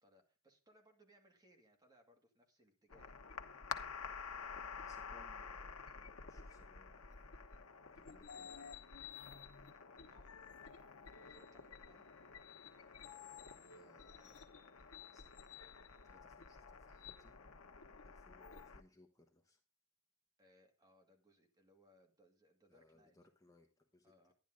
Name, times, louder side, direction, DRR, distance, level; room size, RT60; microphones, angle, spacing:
voice 1, 0.0-3.2 9.2-9.4 10.1-10.3 11.1-12.1 20.4-23.2 24.0-24.3, equal, 20° right, 2 dB, 2.2 m, -69 dB
sound 1, 2.9-18.8, left 6 dB, 85° left, 1.1 m, -51 dB
voice 2, 4.4-7.3 7.9-8.8 13.3-14.5 15.0-15.4 16.0-17.4 18.0-19.6 22.7-24.3, left 1 dB, 15° left, 3 dB, 1.1 m, -68 dB
11.0 x 10.5 x 3.8 m, 0.31 s
head